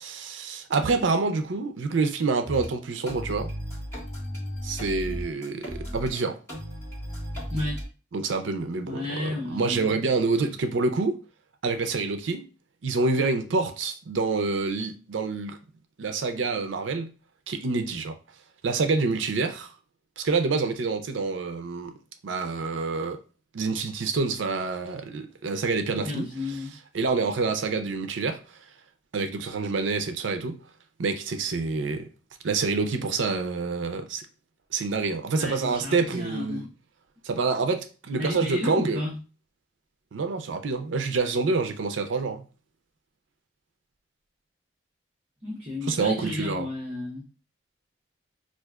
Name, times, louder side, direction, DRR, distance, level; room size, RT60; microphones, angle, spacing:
voice 1, 0.0-3.5 4.6-6.4 8.1-11.2 11.6-12.4 12.8-15.6 16.0-17.1 17.5-18.1 18.6-19.7 20.2-21.9 22.2-23.2 23.5-26.3 26.9-28.4 29.1-30.6 31.0-32.0 32.4-34.2 34.7-36.6 37.2-39.0 40.1-42.4 45.9-46.7, right 4 dB, 85° right, 0.5 m, -27 dB
sound 1, 2.4-2.7 3.1-6.1 6.5-7.8, equal, 15° left, 1.4 m, -35 dB
voice 2, 7.5-7.8 8.8-10.0 25.9-26.7 35.3-36.7 38.2-39.2 45.4-47.3, left 1 dB, 35° right, 0.9 m, -32 dB
4.6 x 2.4 x 2.3 m
head